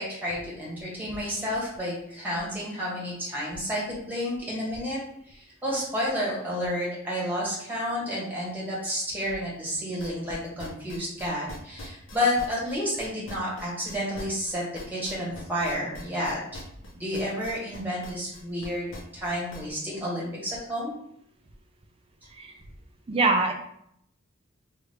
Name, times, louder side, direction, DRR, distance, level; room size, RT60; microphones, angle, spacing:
voice 1, 0.0-5.0 5.3-16.6 16.9-21.0, equal, 10° right, -6 dB, 1.1 m, -30 dB
sound 1, 10.0-19.7, left 1 dB, 65° left, 0.8 m, -42 dB
voice 2, 23.1-23.5, right 3 dB, 25° right, 4 dB, 0.4 m, -23 dB
3.3 x 2.4 x 3.2 m, 0.73 s
head